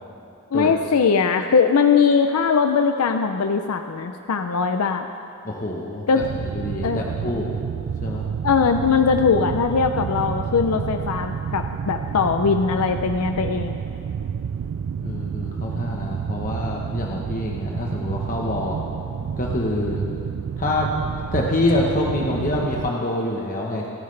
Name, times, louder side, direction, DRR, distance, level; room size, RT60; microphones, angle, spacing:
voice 1, 0.5-5.1 6.1-6.2 6.8-7.0 8.4-13.8, left 5 dB, 80° left, 6 dB, 0.5 m, -20 dB
voice 2, 5.4-6.2 6.5-7.5 8.0-8.3 15.0-18.8 19.4-20.1 20.6-20.9 21.3-23.9, left 2 dB, 40° left, -2 dB, 1.0 m, -26 dB
sound 1, 6.2-22.9, right 7 dB, 65° right, 0.3 m, -29 dB
27.0 x 9.4 x 3.3 m, 2.7 s
head